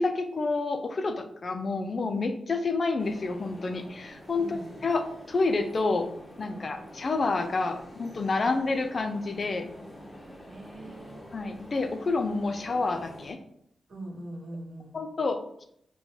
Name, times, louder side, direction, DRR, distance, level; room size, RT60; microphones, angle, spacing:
voice 1, 0.0-6.1 6.4-9.7 11.3-13.4 14.9-15.6, left 3 dB, 45° left, 7 dB, 0.3 m, -29 dB
sound 1, 3.0-13.3, equal, 15° left, 0.7 m, -47 dB
voice 2, 4.3-4.7 6.5-6.8 8.3-8.5 10.5-11.2 13.9-15.0, right 1 dB, 60° right, -3 dB, 1.2 m, -42 dB
3.7 x 2.2 x 3.0 m, 0.72 s
wide cardioid pair, 105°, 0 cm